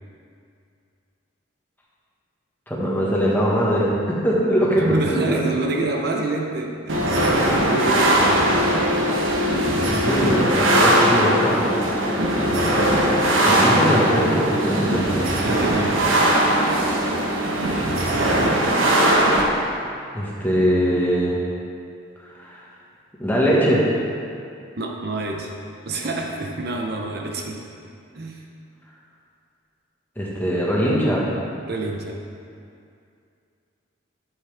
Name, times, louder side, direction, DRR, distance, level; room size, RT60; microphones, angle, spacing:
voice 1, 2.7-5.4 9.9-11.7 13.4-15.0 20.1-21.4 22.4-22.6 23.2-23.8 30.2-31.2, equal, 10° left, -5 dB, 1.5 m, -21 dB
voice 2, 4.8-7.2 7.6-8.4 13.5-14.1 15.4-16.2 24.8-25.5 25.8-27.7 28.1-28.4 31.6-32.2, right 2 dB, 50° right, 1 dB, 0.7 m, -27 dB
sound 1, 6.9-19.4, right 1 dB, 80° right, 1.2 m, -19 dB
11.0 x 8.4 x 3.5 m, 2.4 s
head